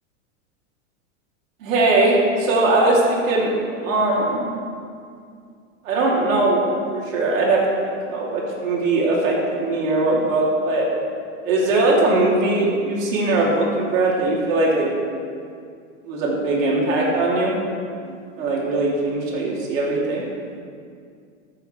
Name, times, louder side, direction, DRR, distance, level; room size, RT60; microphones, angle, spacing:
voice 1, 1.6-3.5 3.8-4.4 5.8-6.6 6.9-10.8 11.4-14.9 16.0-17.5 18.0-20.2, right 2 dB, 90° right, -3 dB, 3.3 m, -20 dB
14.5 x 14.0 x 3.4 m, 2.2 s
supercardioid pair, 170°, 39 cm